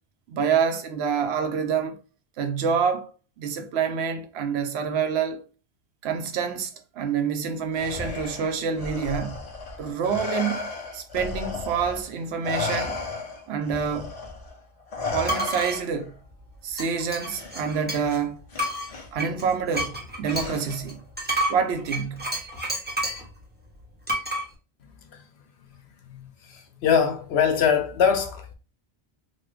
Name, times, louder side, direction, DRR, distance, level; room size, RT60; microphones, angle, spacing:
voice 1, 0.3-2.0 2.4-3.1 3.4-5.4 6.0-9.4 9.8-10.7 10.9-13.0 13.5-14.1 15.1-16.1 16.6-18.4 19.1-21.0 21.5-22.3, right 6 dB, 75° right, 0.8 m, -27 dB
Respiratory sounds, 7.7-12.1 12.4-16.1 17.3-17.5 18.5-19.1 20.3-20.9, left 4 dB, 40° left, 0.6 m, -34 dB
sound 1, 15.3-15.8 16.8-18.2 18.6-23.3 24.1-24.4, right 1 dB, 10° right, 0.7 m, -30 dB
voice 2, 26.1-28.6, left 7 dB, 75° left, 0.9 m, -23 dB
3.1 x 2.1 x 3.2 m
omnidirectional pair, 1.1 m